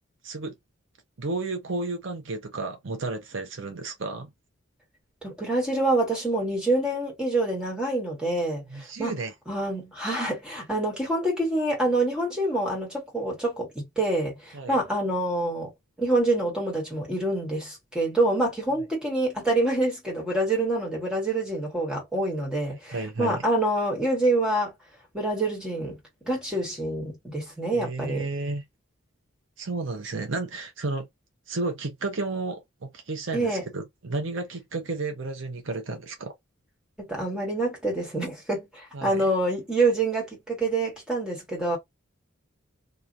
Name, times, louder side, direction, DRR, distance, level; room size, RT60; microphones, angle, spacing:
voice 1, 0.2-0.5 1.2-4.3 8.7-9.3 14.5-14.8 22.7-23.4 27.7-28.6 29.6-31.1 31.5-36.3 38.9-39.3, right 3 dB, 65° right, 0.7 m, -32 dB
voice 2, 5.2-9.1 9.5-15.7 16.0-24.7 25.1-26.0 26.2-28.3 33.3-33.6 37.0-41.8, right 2 dB, 5° right, 1.5 m, -26 dB
2.9 x 2.4 x 2.4 m
head